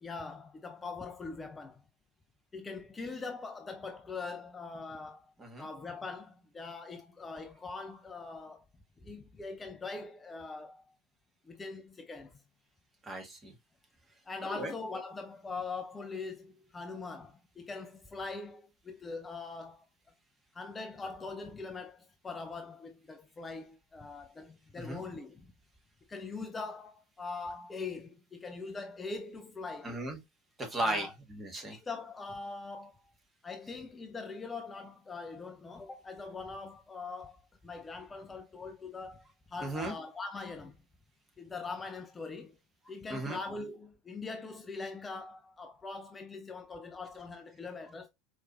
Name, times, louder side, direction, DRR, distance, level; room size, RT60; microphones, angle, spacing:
voice 1, 0.0-1.8 2.5-8.7 9.0-10.9 11.4-12.4 14.3-19.9 20.5-25.5 26.1-29.9 30.8-31.1 31.6-33.1 33.4-40.8 41.4-42.6 42.9-48.1, left 4 dB, 20° left, 0.5 m, -42 dB
voice 2, 13.0-13.5 14.5-14.7 24.8-25.0 29.8-30.2 30.6-31.8 39.6-39.9 43.1-43.4, right 1 dB, 20° right, 1.6 m, -36 dB
4.4 x 3.1 x 2.4 m
hypercardioid pair, 80°, 0 cm